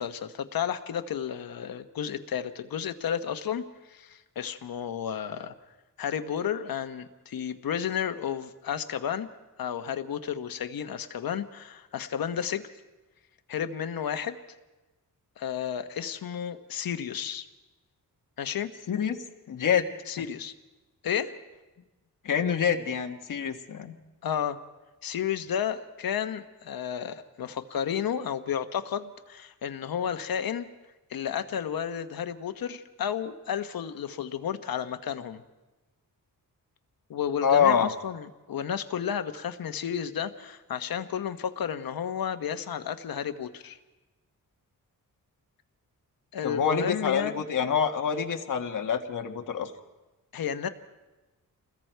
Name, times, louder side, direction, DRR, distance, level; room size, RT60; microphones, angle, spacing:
voice 1, 0.0-5.5 6.0-9.3 9.6-12.6 13.5-14.3 15.4-17.5 18.4-18.7 20.1-20.5 21.0-21.3 24.2-24.6 25.0-30.7 31.1-35.4 37.1-43.8 46.3-47.4 50.3-50.7, left 8 dB, 90° left, 9 dB, 1.2 m, -32 dB
voice 2, 18.9-19.2 19.5-19.8 22.2-23.9 37.4-37.9 46.4-49.7, left 7 dB, 65° left, 4 dB, 1.5 m, -26 dB
29.0 x 21.0 x 4.6 m, 1.1 s
wide cardioid pair, 180°, 34 cm